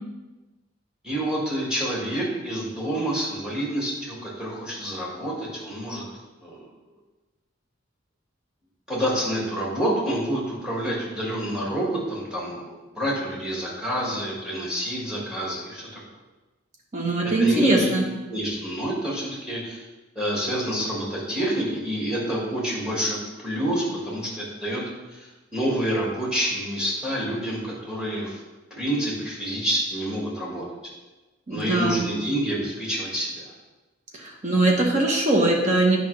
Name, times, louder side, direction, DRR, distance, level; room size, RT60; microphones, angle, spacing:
voice 1, 1.0-6.0 6.4-6.6 8.9-16.0 17.4-17.9 18.3-19.8 20.2-23.2 23.4-24.8 25.1-28.4 28.8-30.6 31.5-33.4, right 1 dB, 5° right, -5 dB, 2.0 m, -28 dB
voice 2, 16.9-18.1 31.5-32.0 34.1-36.0, right 2 dB, 35° right, -1 dB, 1.2 m, -21 dB
9.0 x 5.3 x 3.4 m, 1.2 s
head